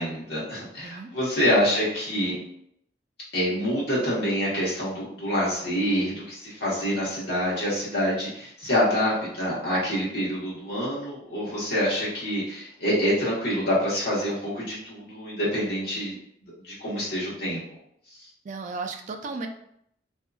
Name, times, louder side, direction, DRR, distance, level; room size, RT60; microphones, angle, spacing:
voice 1, 0.0-2.3 3.3-16.2 16.6-17.6, equal, 65° left, -8 dB, 1.3 m, -26 dB
voice 2, 18.4-19.5, right 4 dB, 45° right, 5 dB, 0.3 m, -34 dB
2.7 x 2.5 x 2.4 m, 0.72 s
head